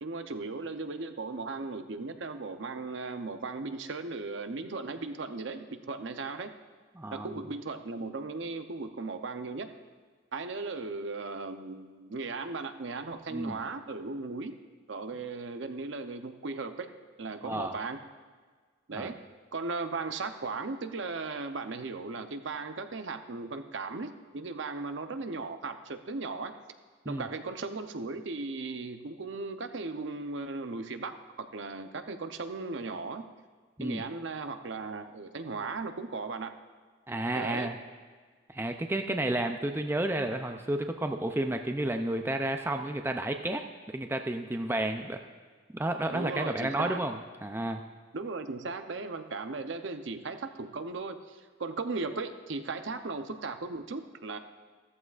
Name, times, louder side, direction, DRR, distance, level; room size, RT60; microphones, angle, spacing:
voice 1, 0.0-6.5 7.1-9.7 10.3-14.6 14.9-16.9 17.2-18.0 18.9-19.2 19.5-26.5 27.0-33.2 33.8-36.5 37.4-37.7 46.1-47.0 48.1-54.4, right 3 dB, 65° right, 8 dB, 0.7 m, -37 dB
voice 2, 7.0-7.4 13.3-13.6 17.4-17.8 18.9-19.1 27.1-27.3 33.8-34.0 37.1-37.7 38.5-43.6 43.9-45.2 45.7-47.2 47.4-47.8, right 1 dB, 10° right, 5 dB, 0.4 m, -31 dB
14.5 x 14.0 x 2.5 m, 1.5 s
head